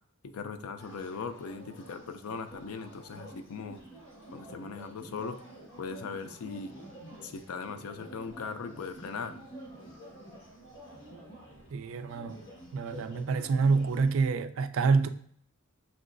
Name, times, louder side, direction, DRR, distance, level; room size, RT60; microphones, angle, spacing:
voice 1, 0.2-3.8 4.3-5.4 5.8-6.7 7.2-9.4, left 5 dB, 90° left, 0.4 m, -39 dB
sound 1, 0.8-14.3, right 1 dB, 60° left, 1.4 m, -49 dB
voice 2, 11.7-12.4 12.7-15.1, right 4 dB, 65° right, 0.3 m, -27 dB
6.0 x 2.9 x 2.5 m
head